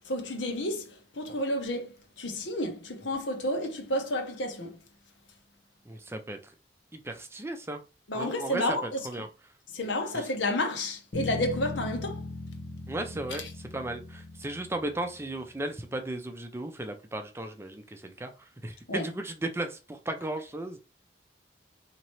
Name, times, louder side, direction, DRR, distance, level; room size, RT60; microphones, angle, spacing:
voice 1, 0.0-4.8 8.1-9.1 9.7-12.2 13.3-13.5 18.9-19.1, left 1 dB, 90° left, 1.0 m, -31 dB
voice 2, 5.9-6.5 6.9-7.8 8.1-9.3 10.1-10.3 12.9-20.8, right 1 dB, 15° right, 0.5 m, -36 dB
sound 1, 11.1-15.5, left 3 dB, 60° left, 1.1 m, -39 dB
4.1 x 2.9 x 3.1 m
head